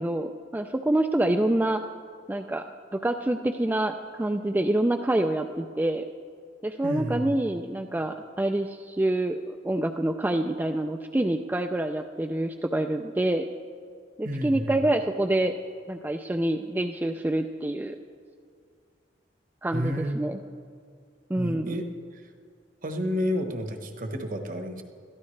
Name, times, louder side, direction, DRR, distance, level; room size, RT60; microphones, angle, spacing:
voice 1, 0.0-1.8 2.3-2.6 2.9-6.0 6.6-13.5 14.2-15.5 15.9-18.0 19.6-20.4 21.3-21.8, right 1 dB, 10° right, 5 dB, 0.3 m, -26 dB
voice 2, 6.8-7.3 14.2-14.7 19.7-20.2 21.3-21.8 22.1-22.2 22.8-24.8, equal, 45° right, 5 dB, 1.1 m, -30 dB
21.0 x 14.0 x 3.3 m, 2.2 s
head